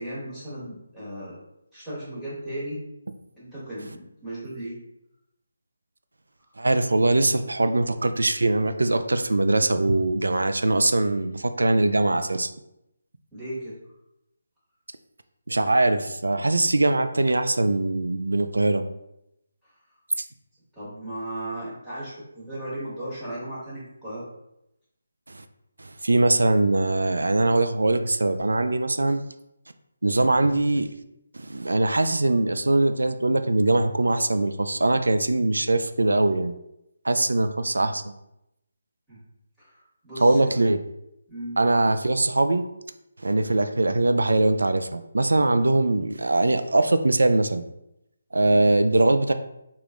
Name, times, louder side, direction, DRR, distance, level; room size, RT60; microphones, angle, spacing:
voice 1, 0.0-1.4 1.7-2.8 3.4-4.8 13.3-13.8 20.7-24.2 39.1-39.2 39.6-39.8 40.0-40.5 41.3-41.6, right 1 dB, ahead, -14 dB, 1.4 m, -36 dB
voice 2, 6.6-12.5 15.5-18.8 25.3-25.4 25.8-29.2 30.0-30.9 31.3-36.5 37.0-38.1 40.2-40.8 41.6-42.6 43.2-47.6 48.3-49.3, right 2 dB, 90° right, 9 dB, 0.3 m, -22 dB
3.5 x 2.3 x 3.7 m, 0.84 s
figure-of-eight pair, 160°, 0 cm